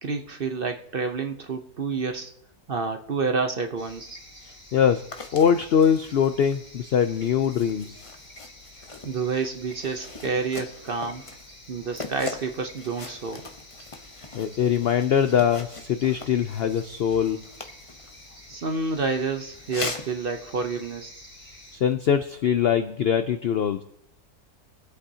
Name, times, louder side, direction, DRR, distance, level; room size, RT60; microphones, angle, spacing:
voice 1, 0.0-2.3 2.7-4.2 9.0-11.2 11.7-13.4 18.5-21.3, right 4 dB, 50° right, 6 dB, 0.7 m, -29 dB
sound 1, 3.8-21.8, left 1 dB, 65° left, 4.9 m, -49 dB
voice 2, 4.4-5.0 5.3-8.0 14.3-17.4 21.8-23.8, left 8 dB, 85° left, 10 dB, 0.5 m, -22 dB
sound 2, 5.1-18.5 19.5-20.1, left 3 dB, 25° left, 0.7 m, -41 dB
23.0 x 8.3 x 2.8 m, 0.71 s
omnidirectional pair, 1.6 m